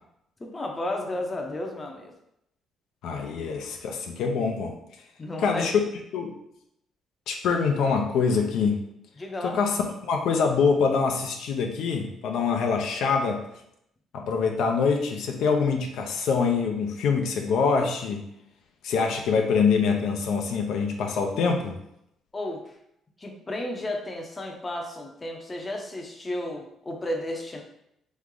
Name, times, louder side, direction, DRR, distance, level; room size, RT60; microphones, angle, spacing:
voice 1, 0.4-2.1 5.2-5.6 9.2-9.6 22.3-22.6 23.2-27.6, left 1 dB, 20° left, 1 dB, 0.7 m, -33 dB
voice 2, 3.0-4.7 5.4-5.7 6.1-6.3 7.3-8.8 9.4-9.8 10.0-13.4 14.1-18.2 18.8-21.8, left 5 dB, 75° left, 3 dB, 0.6 m, -25 dB
3.6 x 3.1 x 3.7 m, 0.77 s
cardioid pair, 120°, 0 cm